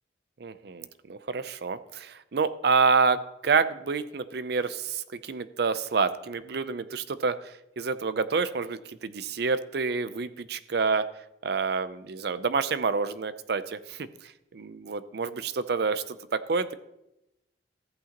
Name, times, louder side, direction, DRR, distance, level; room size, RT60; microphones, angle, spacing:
voice 1, 0.4-7.3 7.8-11.0 11.4-14.1 14.5-16.7, right 4 dB, 65° right, 13 dB, 0.5 m, -28 dB
14.0 x 8.3 x 2.9 m, 0.87 s
head